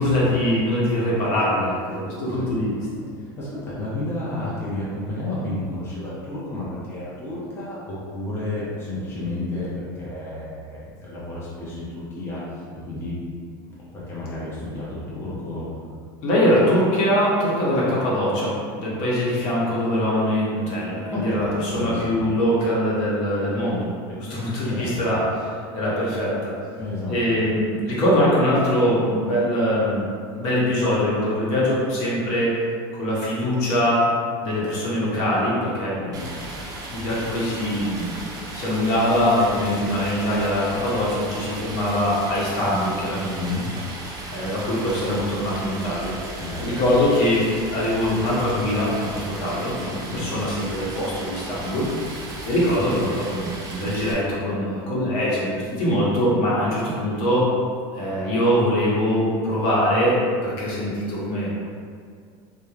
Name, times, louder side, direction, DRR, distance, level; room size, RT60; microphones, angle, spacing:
voice 1, 0.0-2.8 16.2-26.5 27.1-30.0 30.3-32.6 33.0-34.0 34.4-36.0 36.9-43.4 44.3-46.1 46.6-57.5 57.9-61.5, equal, 60° left, -7 dB, 0.9 m, -23 dB
voice 2, 3.4-9.7 10.0-12.4 12.9-13.2 13.9-15.6 21.1-22.1 24.6-24.9 26.8-27.2 36.0-36.2 43.3-43.7 46.3-46.8 50.0-50.2, left 2 dB, 20° left, -8 dB, 0.6 m, -31 dB
Stream, 36.1-54.1, right 1 dB, 30° right, 0.5 m, -36 dB
3.0 x 2.1 x 2.3 m, 2.2 s
supercardioid pair, 125°, 12 cm